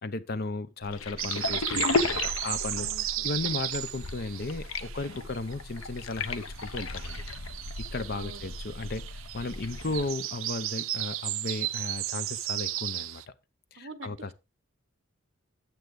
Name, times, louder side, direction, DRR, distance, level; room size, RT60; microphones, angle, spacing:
voice 1, 0.0-2.9 3.2-7.2 7.8-13.2 13.7-14.3, left 3 dB, 50° left, 0.7 m, -35 dB
sound 1, 0.8-10.1, left 3 dB, 80° left, 0.8 m, -35 dB
sound 2, 1.2-5.5 5.8-13.2, right 14 dB, 75° right, 0.5 m, -35 dB
voice 2, 2.8-3.2 8.1-8.5 9.9-10.0 13.8-14.3, right 3 dB, 60° right, 1.0 m, -45 dB
9.4 x 7.8 x 3.8 m
head